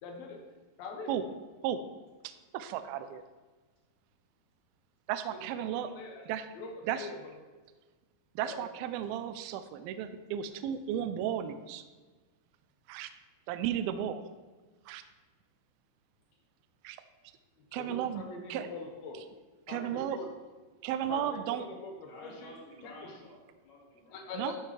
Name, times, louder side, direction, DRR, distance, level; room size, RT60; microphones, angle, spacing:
voice 1, 0.0-0.4 0.8-1.1 5.3-6.2 6.5-7.2 8.4-8.6 17.8-19.2 19.7-20.3 21.1-22.5 22.8-22.9 24.1-24.6, left 3 dB, 70° left, 1 dB, 1.7 m, -43 dB
voice 2, 2.2-3.2 5.1-5.9 6.3-6.5 6.9-7.1 8.4-11.8 12.9-13.1 13.5-14.2 14.9-15.0 16.8-17.0 17.7-18.2 18.5-18.7 19.7-20.2 20.8-21.6 24.4-24.6, right 10 dB, 80° right, 11 dB, 2.2 m, -34 dB
voice 3, 22.0-24.6, left 1 dB, 50° left, -3 dB, 3.1 m, -52 dB
12.5 x 5.8 x 3.3 m, 1.3 s
omnidirectional pair, 4.6 m